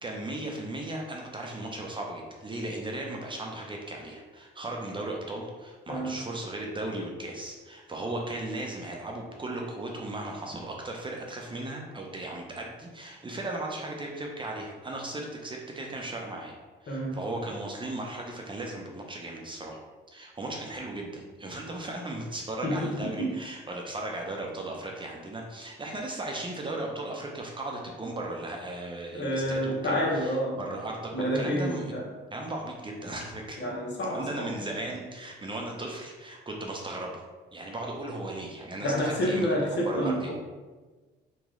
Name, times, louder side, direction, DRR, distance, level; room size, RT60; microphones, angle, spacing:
voice 1, 0.0-16.5 16.8-19.8 20.1-31.9 32.3-33.6 34.1-37.3 37.5-40.3, right 2 dB, 25° right, 0 dB, 0.7 m, -36 dB
voice 2, 5.9-6.2 16.9-17.2 22.6-23.4 29.1-30.6 31.1-32.1 33.6-34.5 38.8-40.3, equal, 60° left, -3 dB, 1.1 m, -29 dB
3.0 x 2.9 x 3.7 m, 1.3 s
cardioid pair, 90°, 20 cm